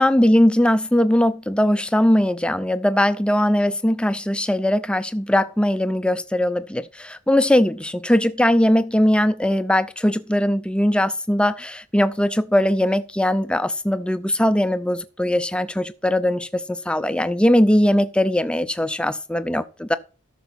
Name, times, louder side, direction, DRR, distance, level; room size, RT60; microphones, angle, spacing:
voice 1, 0.0-20.0, left 1 dB, 5° left, 0.4 m, -20 dB
13.0 x 6.1 x 4.1 m
head